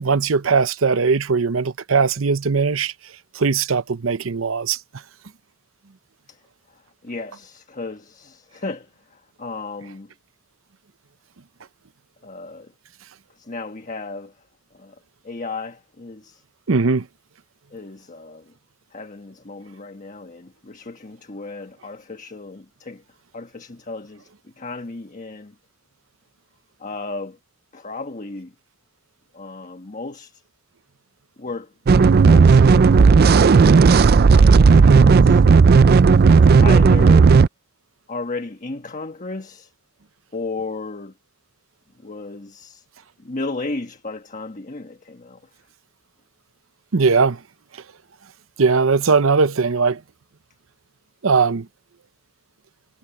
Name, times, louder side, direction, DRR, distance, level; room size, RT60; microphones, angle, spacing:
voice 1, 0.0-2.9 3.3-4.8 16.7-17.1 46.9-47.4 48.6-50.0 51.2-51.7, right 4 dB, 85° right, 0.8 m, -19 dB
voice 2, 6.7-10.1 12.2-12.7 13.3-14.4 14.7-14.9 15.2-16.4 17.7-18.5 18.9-23.0 23.3-25.6 26.8-27.4 27.7-28.5 29.3-30.4 31.4-31.7 32.0-33.1 33.7-35.4 36.6-37.4 38.1-39.7 40.3-41.1 42.0-42.9 43.2-45.4, left 3 dB, 40° left, 1.3 m, -34 dB
sound 1, 31.9-37.5, right 5 dB, 50° right, 0.4 m, -12 dB
head